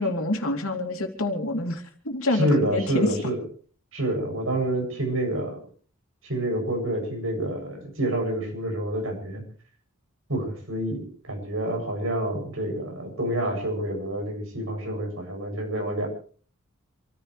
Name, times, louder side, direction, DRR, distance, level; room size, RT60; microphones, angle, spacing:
voice 1, 0.0-3.1, left 2 dB, 80° left, 4 dB, 3.0 m, -27 dB
voice 2, 2.3-3.4 3.9-5.6 6.2-9.4 10.3-16.1, right 1 dB, 70° right, 3 dB, 7.6 m, -28 dB
27.0 x 15.0 x 3.3 m, 0.42 s
head